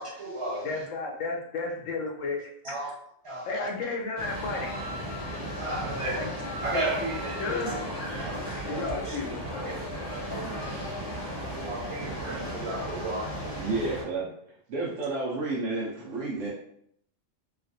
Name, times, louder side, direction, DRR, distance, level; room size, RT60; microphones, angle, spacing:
voice 1, 0.0-0.7 2.7-2.9 3.2-3.5 5.3-6.2 6.6-7.8 8.2-9.2 9.6-9.7 10.1-10.3 11.4-13.6, right 1 dB, 45° right, -2 dB, 0.4 m, -34 dB
voice 2, 0.6-2.9 3.4-4.7 6.2-6.3 7.4-7.8 8.7-9.8, left 3 dB, 75° left, 0 dB, 1.0 m, -33 dB
sound 1, 4.2-14.0, equal, 35° left, 1.4 m, -35 dB
Wind instrument woodwind instrument, 4.6-7.9, left 1 dB, 20° right, 0.7 m, -42 dB
voice 3, 13.6-14.3 14.7-16.5, right 3 dB, 70° right, -5 dB, 1.0 m, -30 dB
3.2 x 2.4 x 2.5 m, 0.70 s
omnidirectional pair, 1.3 m